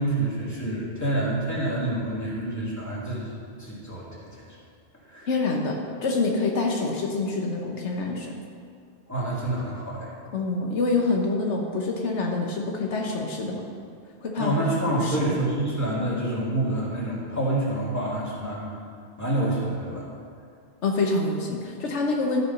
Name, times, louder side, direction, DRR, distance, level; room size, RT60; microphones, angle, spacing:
voice 1, 0.0-4.5 5.1-5.3 9.1-10.1 14.4-18.7 19.2-20.1, right 1 dB, 15° left, -6 dB, 2.5 m, -27 dB
voice 2, 5.3-8.3 10.3-13.6 14.2-14.6 14.9-15.4 20.8-22.4, left 3 dB, 75° left, 0 dB, 1.3 m, -26 dB
12.5 x 6.7 x 5.5 m, 2.2 s
omnidirectional pair, 1.2 m